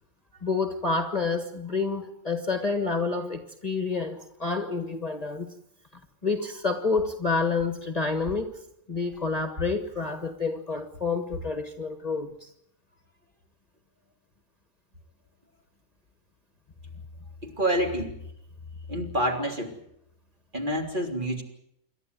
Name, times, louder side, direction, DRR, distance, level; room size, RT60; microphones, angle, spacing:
voice 1, 0.4-5.5 6.2-8.5 8.9-12.5, left 4 dB, 30° left, 8 dB, 1.6 m, -28 dB
voice 2, 17.4-18.2 18.9-19.7 20.5-21.4, right 1 dB, 35° right, 2 dB, 3.6 m, -27 dB
28.0 x 12.5 x 9.7 m, 0.77 s
omnidirectional pair, 1.4 m